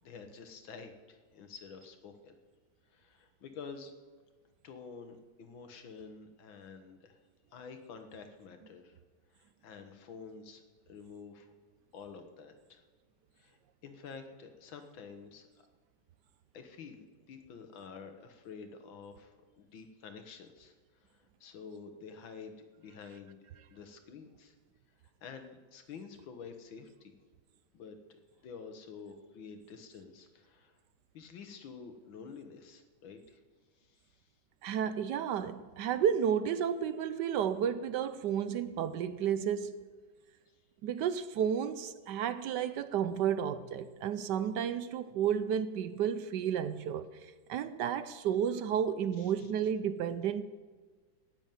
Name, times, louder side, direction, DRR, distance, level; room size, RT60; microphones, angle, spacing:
voice 1, 0.0-2.4 2.9-3.9 4.6-7.2 7.5-9.0 9.3-11.5 11.9-12.8 13.4-15.7 16.5-24.5 25.2-27.2 27.7-28.0 28.4-30.7 31.1-33.4 33.8-34.3 40.5-40.6 49.2-49.5, left 5 dB, 85° left, 2.0 m, -49 dB
voice 2, 34.6-39.9 40.8-50.4, right 8 dB, 70° right, 1.1 m, -32 dB
16.5 x 7.2 x 9.1 m
omnidirectional pair, 2.1 m